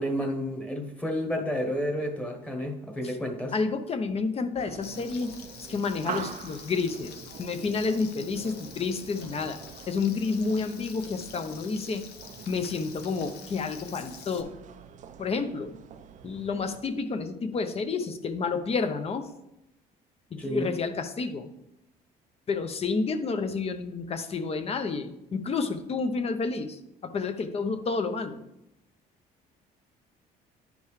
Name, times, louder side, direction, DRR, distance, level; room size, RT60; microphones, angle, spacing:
voice 1, 0.0-3.5 20.4-20.7, equal, 5° left, 3 dB, 1.3 m, -31 dB
voice 2, 3.5-5.3 5.7-9.6 9.9-12.0 12.5-14.5 15.2-15.7 16.2-19.3 20.3-21.5 22.5-28.4, left 4 dB, 35° left, 8 dB, 0.8 m, -30 dB
sound 1, 4.5-16.8, right 8 dB, 50° right, 0.5 m, -44 dB
Frying (food), 4.8-14.4, left 7 dB, 75° left, 0.9 m, -47 dB
10.5 x 5.3 x 3.3 m, 0.85 s
cardioid pair, 110°, 17 cm